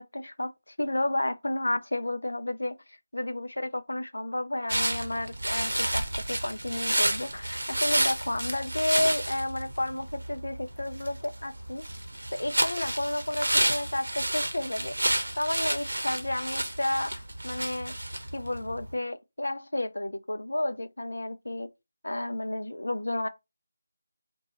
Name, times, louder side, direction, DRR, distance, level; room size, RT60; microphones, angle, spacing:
voice 1, 0.0-11.8 12.3-15.0 15.4-17.9 18.3-21.7 22.0-23.3, left 1 dB, 80° left, 0.3 m, -31 dB
sound 1, 4.7-18.9, right 1 dB, 85° right, 0.6 m, -30 dB
2.9 x 2.2 x 2.8 m
figure-of-eight pair, 160°, 0 cm